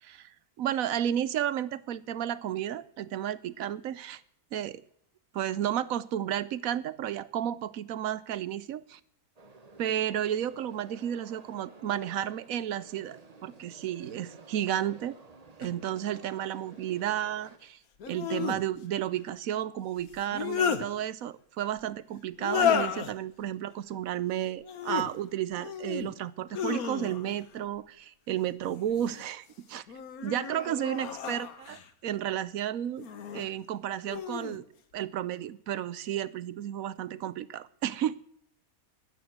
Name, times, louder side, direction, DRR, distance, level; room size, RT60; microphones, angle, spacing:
voice 1, 0.0-4.2 4.5-4.8 5.3-9.0 9.8-15.2 15.6-17.8 18.1-29.8 30.2-31.8 32.0-33.1 33.3-34.6 34.9-38.2, right 11 dB, 75° right, 17 dB, 1.1 m, -32 dB
sound 1, 9.4-17.6, right 3 dB, 30° right, 1.1 m, -53 dB
sound 2, 15.6-15.7 18.0-18.6 20.1-20.8 22.4-23.1 24.6-25.1 25.6-26.1 26.5-27.4 28.6-29.3 29.9-31.9 33.0-33.5 34.0-34.6, left 8 dB, 85° left, 1.6 m, -32 dB
13.0 x 9.2 x 7.9 m, 0.65 s
omnidirectional pair, 1.5 m